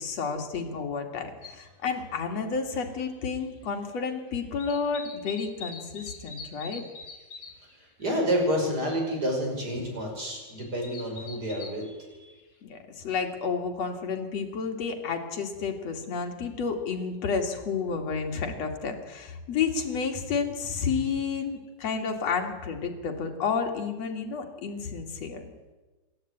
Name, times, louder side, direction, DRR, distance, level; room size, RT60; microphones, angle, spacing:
voice 1, 0.0-6.8 12.6-25.4, left 5 dB, 60° left, 3 dB, 3.4 m, -31 dB
sound 1, 1.4-1.5 2.9-3.0 3.3-4.2 4.4-7.7 8.1-8.2 8.4-8.7 9.2-9.3 10.2-11.8 12.4-12.5, left 4 dB, 45° left, 3.7 m, -43 dB
voice 2, 7.6-12.3, equal, 30° right, 1 dB, 6.2 m, -29 dB
26.5 x 13.0 x 9.5 m, 1.2 s
omnidirectional pair, 3.3 m